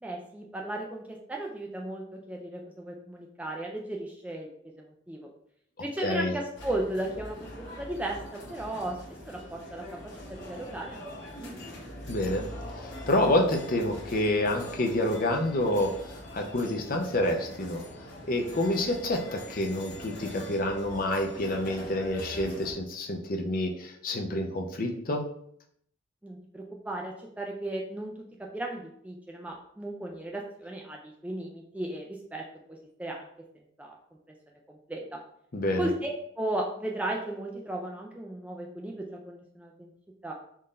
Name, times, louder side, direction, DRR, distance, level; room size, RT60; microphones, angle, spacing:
voice 1, 0.0-4.5 5.1-5.3 5.8-7.4 7.7-9.0 9.3-11.0 11.3-11.8 26.2-28.1 28.4-33.3 33.8-34.0 34.7-35.2 35.8-39.9 40.2-40.3, right 1 dB, 5° right, 0 dB, 0.3 m, -35 dB
voice 2, 6.0-6.3 12.1-12.5 12.8-17.8 18.3-25.2 35.5-35.9, left 1 dB, 45° left, 3 dB, 0.6 m, -28 dB
sound 1, 6.5-22.7, left 1 dB, 65° left, 1.4 m, -43 dB
3.7 x 2.6 x 4.2 m, 0.69 s
head